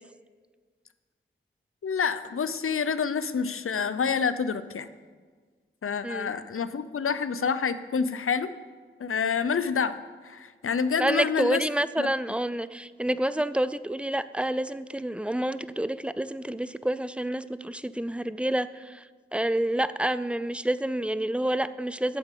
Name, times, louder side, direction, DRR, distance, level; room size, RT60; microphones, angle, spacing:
voice 1, 1.8-4.9 5.8-8.5 9.0-11.7 12.0-12.1, left 6 dB, 85° left, 13 dB, 0.5 m, -28 dB
voice 2, 11.0-19.0 19.3-22.2, right 1 dB, 5° right, 15 dB, 0.4 m, -28 dB
8.5 x 7.3 x 6.5 m, 1.5 s
wide cardioid pair, 45°, 21 cm